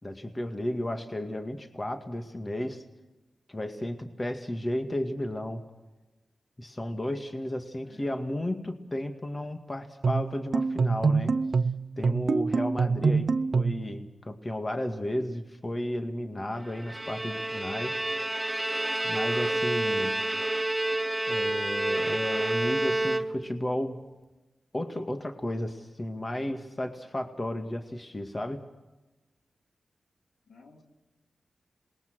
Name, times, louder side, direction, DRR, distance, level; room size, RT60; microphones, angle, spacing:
voice 1, 0.0-2.8 3.5-5.6 6.6-11.3 12.0-18.0 19.0-20.2 21.3-24.0 24.7-28.7, left 1 dB, 30° left, 2.0 m, -33 dB
voice 2, 7.8-8.2 30.5-30.8, left 3 dB, 75° left, 3.1 m, -54 dB
sound 1, 10.0-13.9, right 4 dB, 70° right, 0.7 m, -25 dB
Bowed string instrument, 16.7-23.7, right 1 dB, 15° right, 0.8 m, -29 dB
27.0 x 21.0 x 6.3 m
cardioid pair, 55°, 0 cm